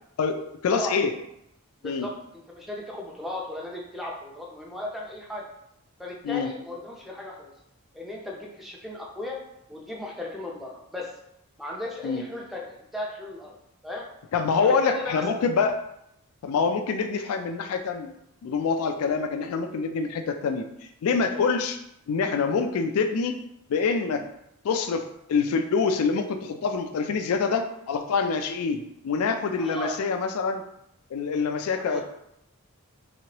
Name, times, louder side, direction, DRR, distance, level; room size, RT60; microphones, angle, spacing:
voice 1, 0.2-1.1 1.8-2.1 6.2-6.5 12.0-12.3 14.3-15.8 16.4-18.1 18.4-20.7 21.0-21.8 22.1-23.4 23.7-24.3 24.6-30.6 31.1-32.0, left 5 dB, 80° left, 7 dB, 0.3 m, -26 dB
voice 2, 1.8-5.5 6.0-7.5 7.9-9.4 9.7-11.1 11.6-13.5 13.8-14.1 14.6-15.2 29.5-29.9 31.7-32.0, left 1 dB, ahead, -2 dB, 0.5 m, -36 dB
3.5 x 3.0 x 2.9 m, 0.80 s
head